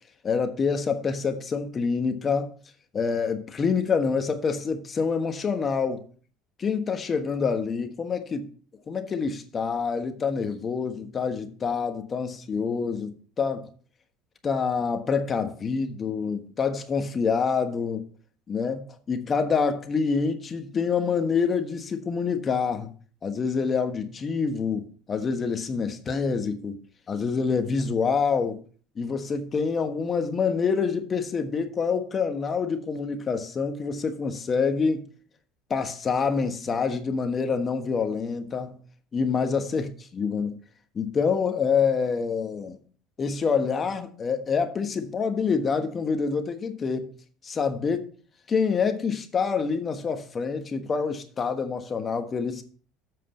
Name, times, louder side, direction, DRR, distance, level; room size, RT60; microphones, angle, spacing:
voice 1, 0.2-2.5 2.9-6.0 6.6-8.5 8.9-13.7 14.4-18.0 18.5-22.9 23.2-26.8 27.1-28.6 29.0-35.0 35.7-38.8 39.1-40.6 40.9-42.8 43.2-47.1 47.4-48.1 48.5-52.6, left 5 dB, 30° left, 1.3 m, -26 dB
7.8 x 4.9 x 7.1 m
cardioid pair, 120°, 0 cm